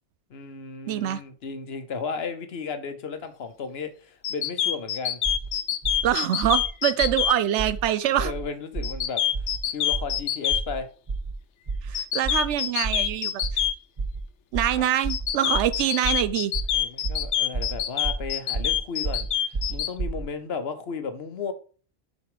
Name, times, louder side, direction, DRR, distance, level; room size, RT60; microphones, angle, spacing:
voice 1, 0.3-5.2 8.2-9.2 9.7-10.9 14.8-14.9 16.7-21.5, left 5 dB, 65° left, 1.1 m, -34 dB
voice 2, 0.9-1.2 6.0-8.3 11.8-13.6 14.5-16.5, right 11 dB, 85° right, 0.9 m, -25 dB
sound 1, 4.2-7.3 8.8-10.6 11.9-13.7 15.1-19.9, left 10 dB, 85° left, 1.0 m, -25 dB
sound 2, 5.2-5.5 5.8-6.1 6.4-6.7 7.0-7.3 7.6-7.8 8.2-8.4 8.7-9.0 9.3-9.6 9.9-10.2 10.5-10.8 11.1-11.3 11.7-11.9 12.2-12.5 12.8-13.1 13.4-13.7 14.0-14.2 14.5-14.8 15.0-15.3 15.5-15.8 16.0-16.3 16.5-16.8 17.0-17.3 17.5-17.8 18.0-18.3 18.5-18.8 19.0-19.3 19.5-20.2, right 4 dB, 30° right, 0.7 m, -30 dB
6.7 x 4.2 x 4.9 m
omnidirectional pair, 1.2 m